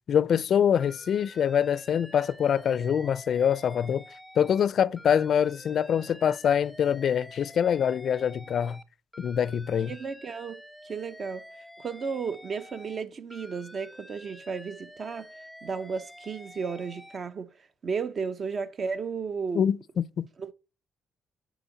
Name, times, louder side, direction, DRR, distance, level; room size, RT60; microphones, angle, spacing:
voice 1, 0.1-4.0 4.4-8.8 9.2-9.9 19.5-20.3, left 8 dB, 60° left, 0.4 m, -25 dB
Alarm, 0.8-4.7 5.0-8.8 9.1-13.0 13.3-17.2, left 1 dB, ahead, 0.8 m, -49 dB
voice 2, 9.9-11.4 11.8-15.3 15.6-17.5 17.8-19.7 20.4-20.5, right 5 dB, 45° right, 0.8 m, -34 dB
9.0 x 5.1 x 4.0 m
cardioid pair, 90°, 0 cm